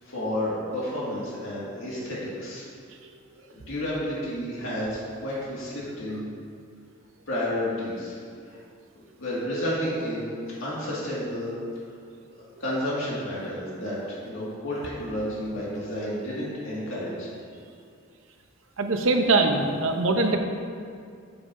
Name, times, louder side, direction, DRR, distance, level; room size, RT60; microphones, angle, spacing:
voice 1, 0.0-2.6 3.5-6.2 7.3-8.2 9.2-11.5 12.6-14.0 14.2-17.3, left 1 dB, 85° left, -7 dB, 1.9 m, -31 dB
voice 2, 18.8-20.4, right 3 dB, 80° right, 5 dB, 0.8 m, -22 dB
12.0 x 7.2 x 2.6 m, 2.3 s
head